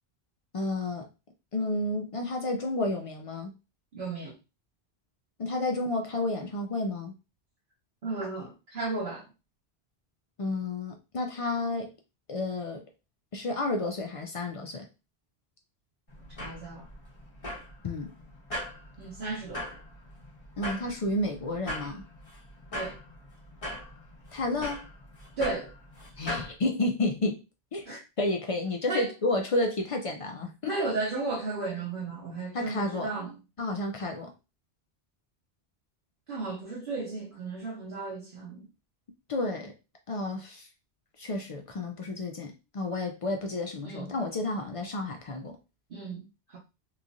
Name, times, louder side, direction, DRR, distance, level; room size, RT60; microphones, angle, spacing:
voice 1, 0.5-1.1 1.5-3.5 5.4-7.1 10.4-11.9 12.3-12.8 13.3-14.9 17.8-18.1 20.6-22.0 24.3-24.8 26.2-27.4 27.7-27.9 28.2-30.9 32.5-33.1 33.6-34.3 39.3-39.7 40.1-40.7 41.2-45.6, left 2 dB, 60° left, 0.3 m, -31 dB
voice 2, 3.9-4.3 8.0-9.2 16.4-16.9 19.0-19.7 22.7-23.0 25.4-25.7 27.9-28.0 28.9-29.1 30.6-33.3 36.3-38.6 43.8-44.1 45.9-46.6, right 3 dB, 60° right, 0.8 m, -34 dB
sound 1, 16.1-26.5, left 1 dB, 35° left, 1.1 m, -40 dB
3.0 x 2.4 x 2.5 m
omnidirectional pair, 1.1 m